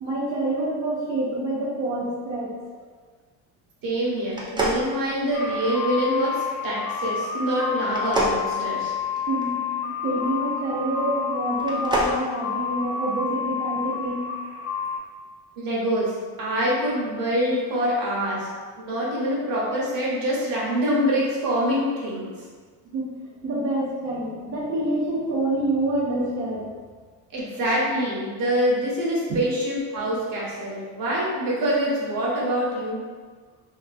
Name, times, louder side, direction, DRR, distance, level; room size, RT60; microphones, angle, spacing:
voice 1, 0.0-2.6 9.3-9.7 10.0-14.3 22.9-23.2 23.4-26.7 29.3-29.4, right 1 dB, 80° right, -7 dB, 0.7 m, -27 dB
voice 2, 3.8-8.9 9.8-10.0 15.6-18.5 18.8-22.3 27.3-33.0, equal, 55° right, -5 dB, 1.0 m, -25 dB
sound 1, 4.3-5.7 7.9-9.5 11.5-12.2, right 1 dB, 10° right, 0.3 m, -27 dB
sound 2, 5.3-15.0, left 6 dB, 40° left, 0.6 m, -29 dB
2.9 x 2.3 x 2.5 m, 1.5 s
cardioid pair, 100°, 42 cm